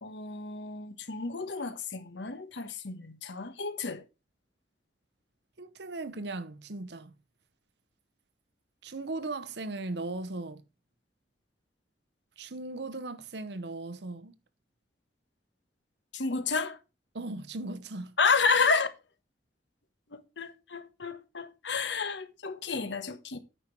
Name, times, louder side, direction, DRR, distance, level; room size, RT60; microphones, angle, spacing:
voice 1, 0.0-4.0 16.1-16.8 18.2-18.9 20.1-23.4, left 4 dB, 85° left, 1.2 m, -30 dB
voice 2, 5.6-7.1 8.8-10.6 12.4-14.3 17.1-18.2, right 2 dB, 65° right, 0.9 m, -38 dB
9.3 x 5.9 x 4.6 m
head